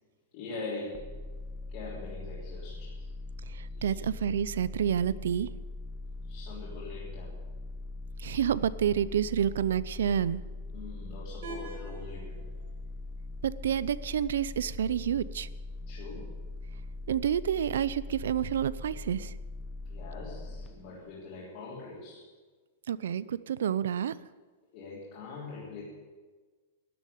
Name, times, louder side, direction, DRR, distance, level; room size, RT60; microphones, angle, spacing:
voice 1, 0.3-1.0 1.7-3.0 3.7-4.0 6.3-7.3 10.7-12.3 15.9-16.3 19.8-22.2 24.7-25.8, left 3 dB, 40° left, -7 dB, 3.4 m, -42 dB
sound 1, 0.9-20.7, left 2 dB, 10° left, 1.0 m, -41 dB
voice 2, 3.5-5.5 8.2-10.4 13.4-15.5 17.1-19.3 22.9-24.1, right 9 dB, 85° right, 18 dB, 0.5 m, -29 dB
sound 2, 11.4-17.4, right 3 dB, 70° right, 3.6 m, -51 dB
12.0 x 8.5 x 9.3 m, 1.4 s
supercardioid pair, 170°, 0 cm